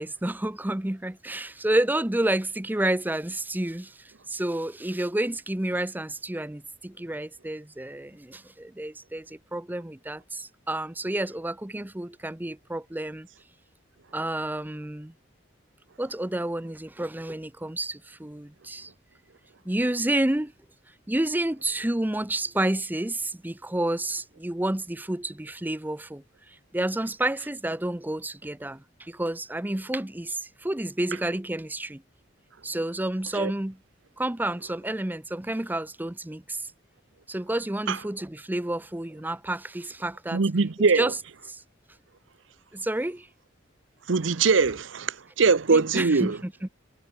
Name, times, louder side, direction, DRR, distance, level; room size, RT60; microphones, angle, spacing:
voice 1, 0.0-13.3 14.1-15.1 16.0-18.9 19.6-20.5 21.1-32.0 32.6-33.8 34.2-36.7 37.3-40.4 40.8-41.2 41.5-41.6 42.7-43.3 45.7-46.7, right 1 dB, 10° right, 0.6 m, -30 dB
voice 2, 40.3-41.1 44.1-46.4, right 4 dB, 80° right, 0.8 m, -22 dB
head